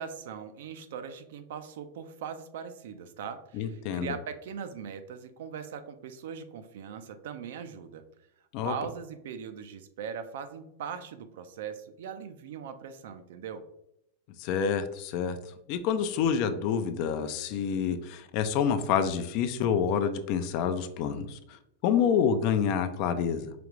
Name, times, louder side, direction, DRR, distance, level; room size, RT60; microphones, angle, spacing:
voice 1, 0.0-8.0 8.6-13.6, right 7 dB, 75° right, 9 dB, 0.5 m, -40 dB
voice 2, 3.5-4.1 8.5-8.7 14.4-23.5, left 7 dB, 50° left, 10 dB, 0.4 m, -28 dB
4.9 x 2.4 x 3.0 m, 0.79 s
hypercardioid pair, 125°, 0 cm